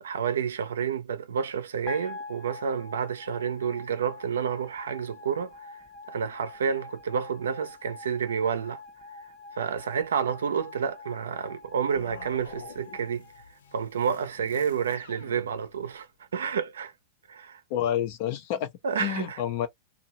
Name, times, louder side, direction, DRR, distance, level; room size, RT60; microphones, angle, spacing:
voice 1, 0.0-5.6 6.1-8.8 9.6-13.2 13.7-16.1 16.3-16.9 17.3-17.6 18.8-19.4, right 7 dB, 90° right, 0.6 m, -29 dB
sound 1, 1.9-14.1, left 3 dB, 25° left, 0.8 m, -45 dB
sound 2, 11.9-16.0, left 5 dB, 85° left, 0.6 m, -49 dB
voice 2, 17.7-18.7 19.0-19.7, left 10 dB, 55° left, 0.9 m, -28 dB
2.7 x 2.4 x 2.8 m
hypercardioid pair, 115°, 0 cm